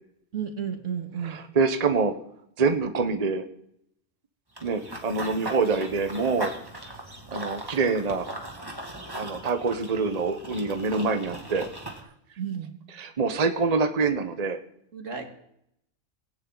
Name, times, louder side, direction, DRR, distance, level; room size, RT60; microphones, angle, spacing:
voice 1, 0.3-1.4 12.4-12.7 14.9-15.3, right 7 dB, 75° right, 5 dB, 2.4 m, -32 dB
voice 2, 1.2-2.1 2.6-3.4 4.6-6.5 6.8-6.9 7.3-8.3 9.1-11.7 12.9-14.6, right 4 dB, 35° right, 7 dB, 1.0 m, -25 dB
Run / Bird vocalization bird call bird song, 4.6-12.0, right 1 dB, 20° right, 2.2 m, -39 dB
19.0 x 17.5 x 3.9 m, 0.75 s
omnidirectional pair, 1.3 m